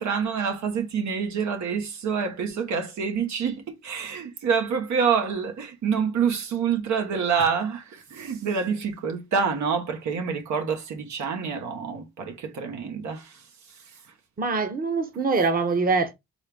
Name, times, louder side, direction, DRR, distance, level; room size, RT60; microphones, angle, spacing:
voice 1, 0.0-13.4, right 6 dB, 70° right, 1.3 m, -27 dB
voice 2, 14.4-16.1, right 4 dB, 30° right, 1.0 m, -24 dB
4.4 x 3.4 x 3.4 m
cardioid pair, 90°, 30 cm